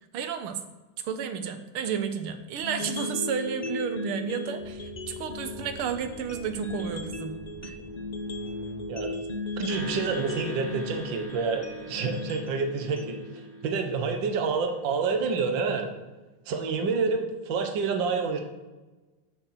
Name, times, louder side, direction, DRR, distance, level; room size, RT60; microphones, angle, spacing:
voice 1, 0.1-0.6 1.0-7.4 7.6-7.8, right 7 dB, 85° right, 8 dB, 1.8 m, -32 dB
sound 1, 2.6-14.6, left 2 dB, 80° left, 0.3 m, -37 dB
sound 2, 4.6-11.9, equal, 35° right, 3.4 m, -48 dB
voice 2, 9.6-13.2 13.6-15.9 16.5-18.4, right 5 dB, 60° right, 4 dB, 1.9 m, -28 dB
sound 3, 9.7-14.2, left 1 dB, 60° left, 3.8 m, -43 dB
13.0 x 6.7 x 5.9 m, 1.2 s
omnidirectional pair, 2.4 m